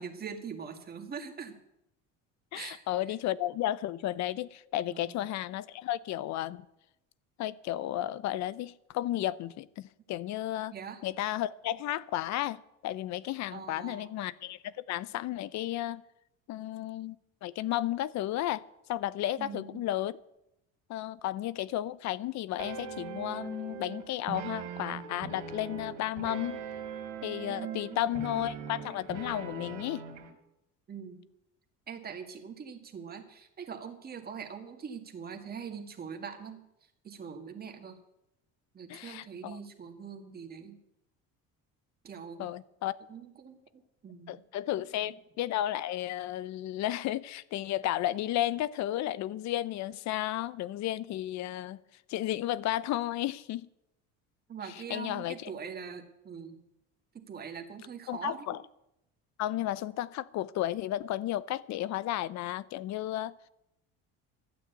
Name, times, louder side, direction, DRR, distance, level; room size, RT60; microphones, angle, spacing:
voice 1, 0.0-1.6 2.5-2.8 4.9-5.2 10.7-11.0 13.5-14.2 19.4-19.8 27.5-28.0 30.9-31.2 31.9-36.6 37.0-38.0 38.7-40.8 42.0-42.5 43.1-43.6 44.0-44.4 54.5-56.6 57.1-58.5, right 6 dB, 30° right, 1.9 m, -42 dB
voice 2, 2.5-6.6 7.4-10.7 11.0-16.0 16.5-17.2 17.4-18.6 18.9-20.1 20.9-26.6 27.2-30.0 38.9-39.6 42.4-43.0 44.3-51.8 52.1-53.7 54.9-55.5 58.1-58.6 59.4-63.3, left 13 dB, 55° left, 0.7 m, -33 dB
sound 1, 22.6-30.3, right 7 dB, 70° right, 3.0 m, -41 dB
13.0 x 9.1 x 8.2 m
cardioid pair, 140°, 33 cm